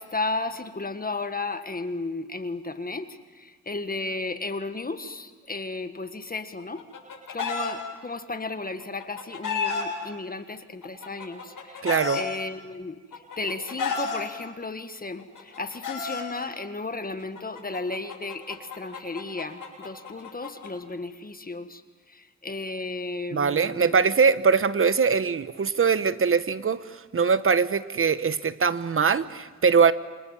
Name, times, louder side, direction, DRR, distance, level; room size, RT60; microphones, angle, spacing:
voice 1, 0.0-6.8 7.3-13.0 13.4-21.8 22.1-24.0, left 3 dB, 25° left, 1.6 m, -34 dB
Chicken rooster, 6.6-7.7 8.8-9.8 10.8-12.2 13.1-14.2 15.2-16.2 17.4-20.7, left 5 dB, 80° left, 7.6 m, -32 dB
voice 2, 11.8-12.2 23.3-29.9, right 5 dB, 40° right, 1.0 m, -22 dB
28.5 x 25.5 x 7.4 m
cardioid pair, 95°, 32 cm